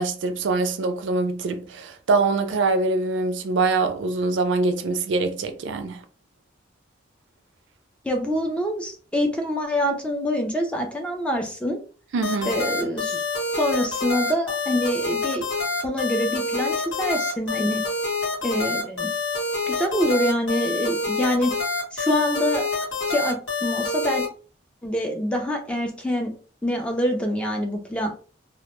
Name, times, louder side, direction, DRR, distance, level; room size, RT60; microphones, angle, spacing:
voice 1, 0.0-6.0 12.1-12.6, right 3 dB, 70° right, 0.4 m, -24 dB
voice 2, 8.0-11.8 12.5-13.2 13.5-15.5 15.8-17.8 18.4-19.1 19.7-21.5 21.9-22.6 23.1-24.3 24.8-26.3 26.6-28.1, equal, 5° left, 0.4 m, -25 dB
sound 1, 12.2-24.3, left 3 dB, 75° left, 0.9 m, -27 dB
2.0 x 2.0 x 2.9 m
head